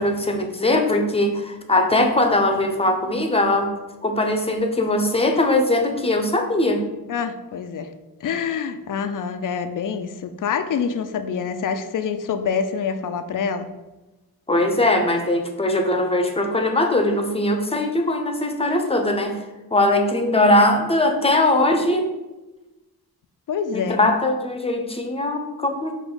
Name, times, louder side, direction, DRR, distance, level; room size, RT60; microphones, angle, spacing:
voice 1, 0.0-3.7 4.0-6.8 14.5-19.4 19.7-22.1 23.7-26.0, left 1 dB, 15° left, 4 dB, 0.6 m, -20 dB
voice 2, 7.1-7.9 8.2-13.7 23.5-24.0, left 6 dB, 55° left, 9 dB, 0.5 m, -26 dB
5.1 x 2.5 x 3.8 m, 1.1 s
cardioid pair, 40°, 39 cm